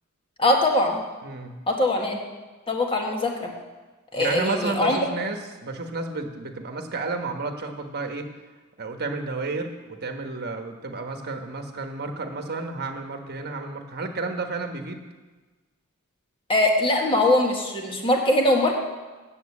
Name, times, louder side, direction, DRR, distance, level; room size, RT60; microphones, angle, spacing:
voice 1, 0.4-1.0 1.7-2.2 2.7-3.5 4.1-5.0 16.5-18.7, left 1 dB, 25° left, 1 dB, 1.7 m, -22 dB
voice 2, 1.2-1.6 4.2-8.3 8.8-15.0, right 3 dB, 50° right, 5 dB, 1.2 m, -31 dB
9.2 x 7.4 x 8.3 m, 1.3 s
head